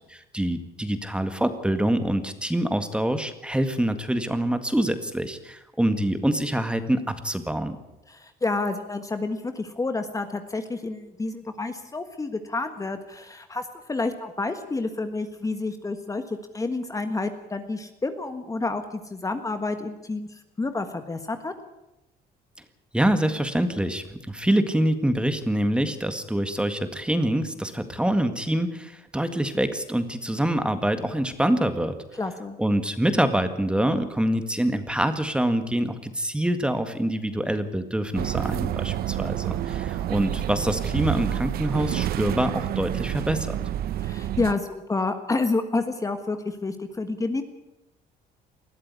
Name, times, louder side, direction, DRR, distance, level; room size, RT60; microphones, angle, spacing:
voice 1, 0.1-7.8 22.9-32.0 32.6-43.6, right 1 dB, 5° right, 9 dB, 1.8 m, -25 dB
voice 2, 8.1-20.3 20.6-21.5 32.2-32.6 44.0-47.4, left 3 dB, 20° left, 8 dB, 1.5 m, -29 dB
sound 1, 38.1-44.5, right 12 dB, 65° right, 0.7 m, -28 dB
20.5 x 13.5 x 9.7 m, 0.94 s
cardioid pair, 110°, 17 cm